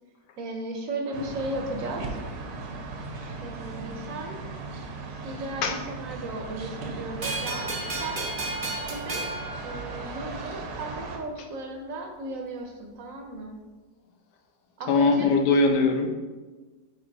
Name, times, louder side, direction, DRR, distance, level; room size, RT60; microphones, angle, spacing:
voice 1, 0.4-2.2 3.4-4.4 5.1-8.2 8.9-9.2 9.6-13.5 14.8-15.4, right 2 dB, 60° right, 3 dB, 1.0 m, -36 dB
sound 1, 1.1-11.2, right 3 dB, 80° right, 1.4 m, -37 dB
sound 2, 7.2-10.5, right 2 dB, 40° right, 0.6 m, -33 dB
voice 2, 14.9-16.1, left 3 dB, 75° left, 4 dB, 1.3 m, -21 dB
5.1 x 4.8 x 4.0 m, 1.3 s
omnidirectional pair, 1.9 m